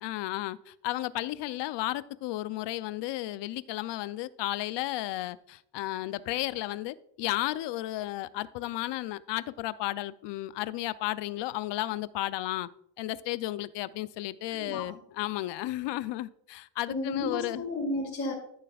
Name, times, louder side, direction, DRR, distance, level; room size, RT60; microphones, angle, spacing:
voice 1, 0.0-12.7 13.0-17.6, left 16 dB, 70° left, 17 dB, 0.5 m, -33 dB
voice 2, 14.5-14.9 16.9-18.3, left 2 dB, 30° left, -5 dB, 2.7 m, -33 dB
13.0 x 6.8 x 2.3 m, 0.71 s
cardioid pair, 145°, 44 cm